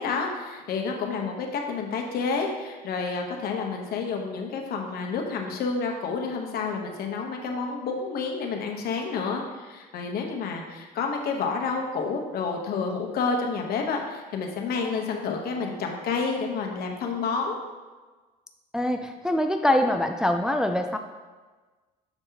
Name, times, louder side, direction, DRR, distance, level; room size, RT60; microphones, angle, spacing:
voice 1, 0.0-17.6, left 4 dB, 65° left, 2 dB, 1.0 m, -29 dB
voice 2, 18.7-21.0, left 1 dB, 5° right, 5 dB, 0.3 m, -24 dB
7.1 x 5.3 x 2.8 m, 1.3 s
cardioid pair, 110°, 17 cm